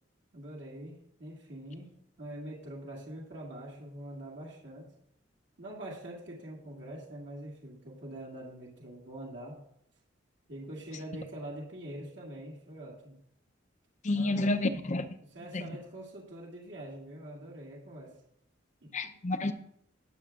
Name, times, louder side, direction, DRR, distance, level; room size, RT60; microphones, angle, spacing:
voice 1, 0.3-1.9 2.2-4.9 5.6-9.6 10.5-13.2 14.1-14.7 15.2-18.2 18.8-19.1, right 1 dB, 70° right, 2.2 m, -44 dB
voice 2, 14.0-15.1 15.5-15.6 18.9-19.5, left 2 dB, 40° left, 0.7 m, -29 dB
19.5 x 7.1 x 2.5 m
head